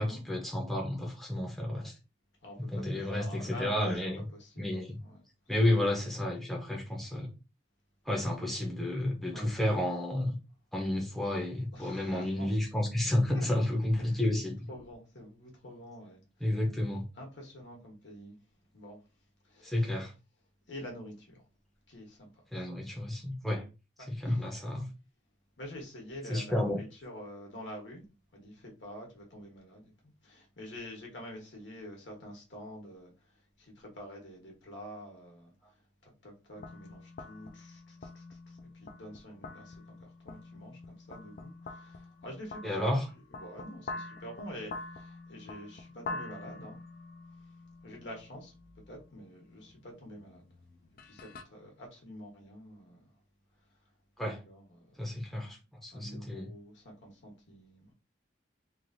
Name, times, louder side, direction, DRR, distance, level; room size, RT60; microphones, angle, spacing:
voice 1, 0.0-2.0 2.7-4.2 4.6-5.0 5.5-7.3 8.1-10.3 10.7-14.6 16.4-17.1 19.6-20.1 22.5-23.6 24.1-24.8 26.3-26.8 42.6-43.1 54.2-54.4 55.0-56.5, left 1 dB, ahead, 0.6 m, -31 dB
voice 2, 2.4-4.0 4.3-5.2 8.1-8.2 9.3-9.6 11.7-12.5 13.3-13.5 14.0-14.2 14.7-16.6 17.1-18.4 18.7-19.0 19.4-20.0 20.7-21.4 21.9-22.7 24.0-24.6 25.6-28.0 28.3-43.0 43.3-46.8 47.8-48.5 48.9-50.4 51.0-53.1 54.2-55.2 55.9-57.9, equal, 70° left, 1.2 m, -47 dB
sound 1, 36.6-51.4, left 2 dB, 45° left, 0.3 m, -46 dB
3.1 x 2.5 x 2.6 m
head